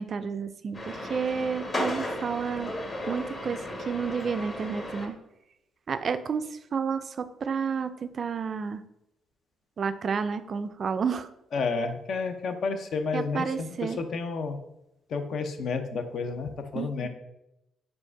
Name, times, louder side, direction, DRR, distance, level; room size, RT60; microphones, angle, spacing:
voice 1, 0.0-2.7 3.1-5.2 5.9-8.8 9.8-11.3 13.1-14.0 16.8-17.1, right 6 dB, 50° right, 11 dB, 0.3 m, -31 dB
sound 1, 0.7-5.1, left 1 dB, 35° left, 1.1 m, -34 dB
voice 2, 11.5-14.6 15.1-17.1, left 4 dB, 65° left, 7 dB, 0.5 m, -31 dB
4.6 x 2.5 x 4.5 m, 0.88 s
cardioid pair, 90°, 0 cm